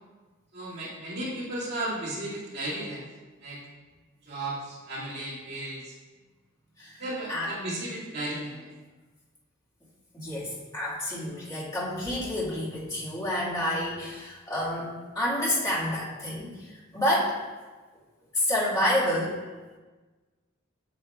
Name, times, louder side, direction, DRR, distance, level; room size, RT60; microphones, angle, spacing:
voice 1, 0.5-3.0 3.4-3.6 4.2-6.0 7.0-8.7, right 1 dB, 50° right, -7 dB, 2.2 m, -34 dB
voice 2, 10.1-17.4 18.3-19.3, left 1 dB, 15° left, -8 dB, 1.8 m, -29 dB
8.0 x 7.1 x 2.4 m, 1.3 s
head